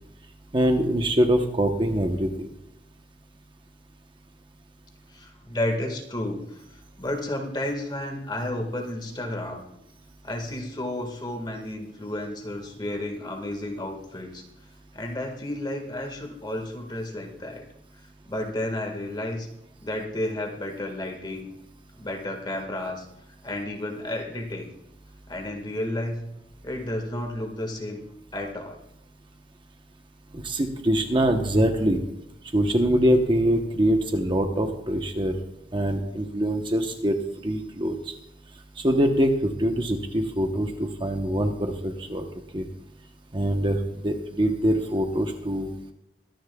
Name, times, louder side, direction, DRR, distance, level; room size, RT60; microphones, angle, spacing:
voice 1, 0.5-2.5 30.3-32.0 32.5-35.3 35.7-37.1 37.4-38.1 38.8-42.2 42.5-42.6 43.3-45.7, equal, 30° right, 4 dB, 0.9 m, -24 dB
voice 2, 5.1-6.6 7.0-9.6 10.2-14.4 14.9-17.6 18.3-19.5 19.8-21.5 21.9-23.0 23.4-24.7 25.3-26.2 26.6-28.0 28.3-28.8, left 1 dB, 25° left, 3 dB, 1.7 m, -32 dB
23.0 x 10.5 x 2.3 m, 0.88 s
head